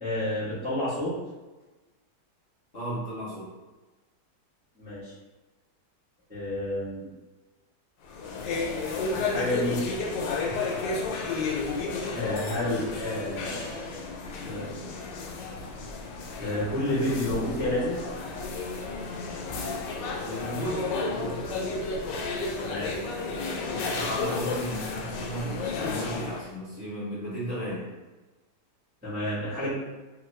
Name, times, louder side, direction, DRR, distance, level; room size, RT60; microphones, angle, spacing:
voice 1, 0.0-1.1 4.8-5.1 6.3-7.1 9.1-9.8 12.1-13.7 14.4-14.6 16.4-18.0 22.6-23.0 29.0-29.7, left 1 dB, 5° right, -12 dB, 0.9 m, -30 dB
voice 2, 2.7-3.5 20.2-21.9 23.3-27.9, equal, 50° left, -8 dB, 0.9 m, -35 dB
sound 1, 8.0-26.5, left 3 dB, 90° left, 1.2 m, -32 dB
2.9 x 2.4 x 3.1 m, 1.2 s
omnidirectional pair, 1.8 m